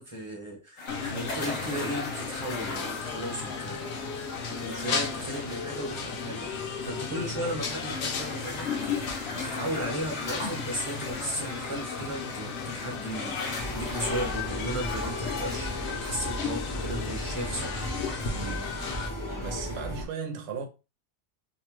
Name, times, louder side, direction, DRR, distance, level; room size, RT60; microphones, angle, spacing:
voice 1, 0.0-8.7 9.3-18.0, right 1 dB, 30° right, 0.8 m, -36 dB
sound 1, 0.8-19.6, left 4 dB, 85° left, 1.2 m, -39 dB
sound 2, 0.9-19.1, left 5 dB, 65° left, 0.9 m, -35 dB
sound 3, 13.6-20.0, equal, 25° left, 0.5 m, -35 dB
voice 2, 18.3-18.8 19.4-20.7, right 6 dB, 90° right, 1.0 m, -36 dB
2.8 x 2.1 x 3.0 m
omnidirectional pair, 1.3 m